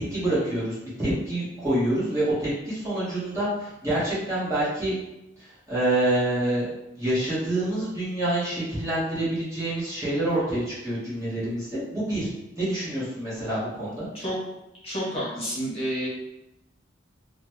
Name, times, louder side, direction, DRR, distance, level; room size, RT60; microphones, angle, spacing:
voice 1, 0.0-4.9 5.4-6.7 7.0-12.3 12.6-14.1, right 1 dB, 15° right, -10 dB, 1.2 m, -27 dB
voice 2, 14.8-16.1, equal, 30° left, -7 dB, 0.9 m, -29 dB
3.0 x 2.1 x 3.0 m, 0.91 s
head